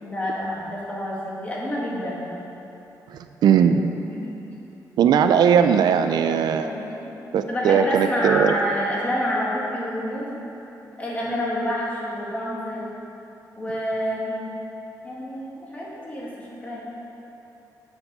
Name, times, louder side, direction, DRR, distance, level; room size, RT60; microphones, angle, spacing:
voice 1, 0.0-2.2 4.0-4.3 6.6-7.1 7.5-10.4 11.0-12.8 13.6-14.6 15.0-16.8, equal, 20° left, -6 dB, 1.9 m, -28 dB
voice 2, 3.1-3.9 5.0-6.7 7.3-8.6, right 7 dB, 85° right, 8 dB, 0.4 m, -19 dB
7.0 x 6.9 x 6.8 m, 3.0 s
wide cardioid pair, 155°, 7 cm